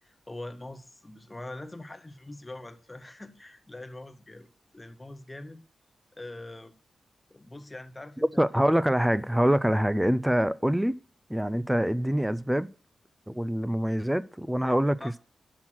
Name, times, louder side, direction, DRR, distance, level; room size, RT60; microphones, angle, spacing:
voice 1, 0.0-4.5 4.7-5.6 6.1-6.7 7.3-8.7 14.1-14.2 14.6-15.2, left 2 dB, 15° left, 0.7 m, -43 dB
voice 2, 8.4-11.0 11.3-12.7 13.3-15.0, equal, 5° right, 0.3 m, -25 dB
6.1 x 5.7 x 6.1 m
wide cardioid pair, 125°, 0 cm